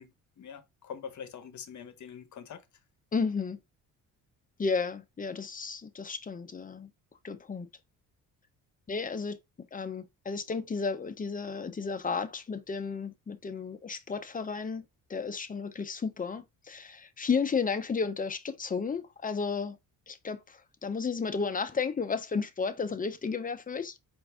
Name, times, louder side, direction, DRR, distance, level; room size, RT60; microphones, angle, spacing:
voice 1, 0.0-2.6, left 7 dB, 50° left, 1.0 m, -44 dB
voice 2, 3.1-3.6 4.6-6.9 7.2-7.7 8.9-9.4 9.7-14.8 15.1-19.8 20.1-24.0, left 5 dB, 25° left, 0.7 m, -33 dB
4.6 x 2.6 x 3.4 m
cardioid pair, 80°, 36 cm